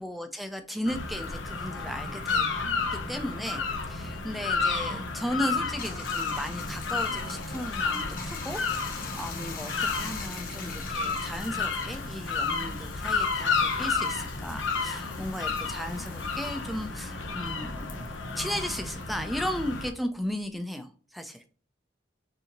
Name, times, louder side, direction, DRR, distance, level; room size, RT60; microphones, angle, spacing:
voice 1, 0.0-2.5 2.9-8.6 8.9-18.1 18.4-21.4, equal, ahead, 6 dB, 0.5 m, -35 dB
sound 1, 0.9-19.9, left 4 dB, 80° left, 0.9 m, -31 dB
Bathtub (filling or washing), 5.6-18.4 18.7-20.6, left 5 dB, 45° left, 1.1 m, -44 dB
6.3 x 2.7 x 2.9 m, 0.43 s
head